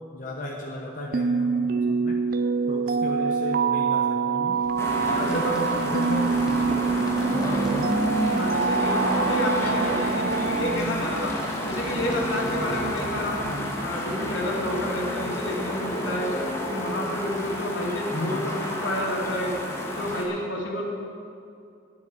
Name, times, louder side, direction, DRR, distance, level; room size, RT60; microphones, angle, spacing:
voice 1, 0.1-2.2 2.7-4.6 5.0-6.8 7.3-8.0 18.1-18.4, left 1 dB, 45° left, -2 dB, 1.1 m, -34 dB
sound 1, 1.1-10.8, right 5 dB, 50° right, 0.4 m, -25 dB
sound 2, 4.5-13.9, equal, 5° right, 1.2 m, -46 dB
sound 3, 4.8-20.2, equal, 15° left, 1.5 m, -30 dB
voice 2, 5.1-5.6 8.3-11.3 11.6-13.5 13.8-16.4 16.7-19.6 19.9-20.8, left 1 dB, 85° left, -2 dB, 2.5 m, -29 dB
9.8 x 7.9 x 9.2 m, 2.5 s
head